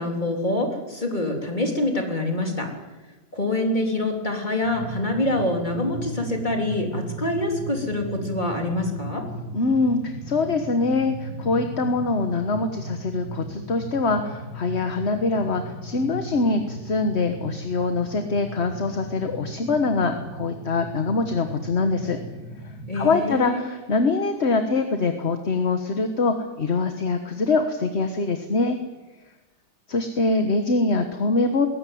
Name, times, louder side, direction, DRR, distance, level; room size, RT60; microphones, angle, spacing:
voice 1, 0.0-2.7 3.3-9.3 22.9-23.6, left 2 dB, 25° left, 2 dB, 3.8 m, -25 dB
sound 1, 4.6-23.2, right 1 dB, 75° right, 5.4 m, -36 dB
voice 2, 9.5-22.2 22.6-28.8 29.9-31.7, left 3 dB, 40° left, 6 dB, 1.6 m, -24 dB
20.5 x 16.5 x 9.3 m, 1.1 s
omnidirectional pair, 1.8 m